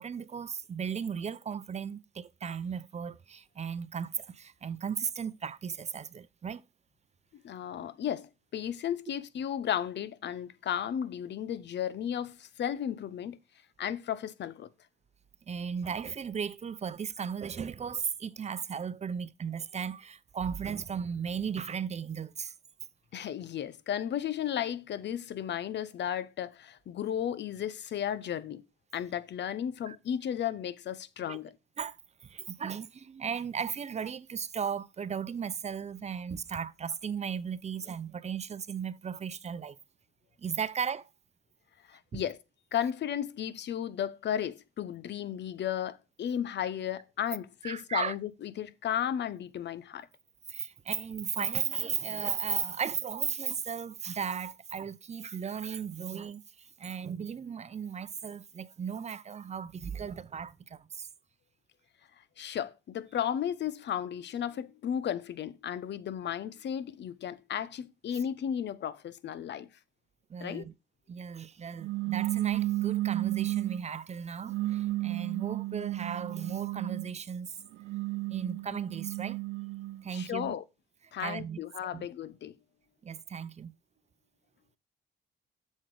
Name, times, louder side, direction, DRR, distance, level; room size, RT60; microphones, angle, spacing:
voice 1, 0.0-6.6 15.5-22.5 29.9-30.0 31.3-31.4 31.8-32.0 32.2-39.8 40.4-41.1 42.1-42.2 47.6-48.1 50.5-56.4 56.8-61.1 70.3-70.7 71.1-77.5 78.3-79.4 80.0-80.6 81.2-81.6 81.9-82.1 83.0-83.7, right 7 dB, 35° right, 0.6 m, -36 dB
voice 2, 7.3-13.4 13.8-14.7 23.1-28.6 28.9-31.6 41.9-42.4 42.7-50.1 62.4-69.7 70.4-70.6 80.1-80.6 81.1-82.5, left 9 dB, 60° left, 0.9 m, -34 dB
sound 1, 71.8-73.8 74.5-77.1 77.7-80.0, right 17 dB, 75° right, 0.5 m, -33 dB
7.6 x 6.5 x 4.8 m
cardioid pair, 90°, 20 cm